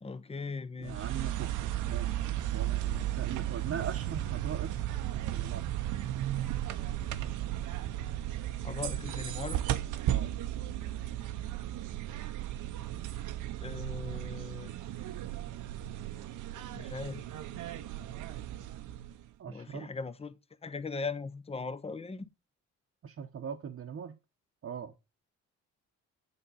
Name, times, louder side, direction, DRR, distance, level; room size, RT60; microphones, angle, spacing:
voice 1, 0.0-1.0 8.6-9.6 13.6-14.7 16.7-17.3 19.5-20.3 20.6-22.3, left 4 dB, 20° left, 0.7 m, -39 dB
voice 2, 0.8-5.9 10.1-10.3 19.4-19.9 23.0-24.2 24.6-24.9, right 7 dB, 50° right, 0.9 m, -41 dB
sound 1, 0.8-19.3, right 13 dB, 80° right, 0.8 m, -35 dB
8.1 x 3.7 x 5.4 m
cardioid pair, 90°, 30 cm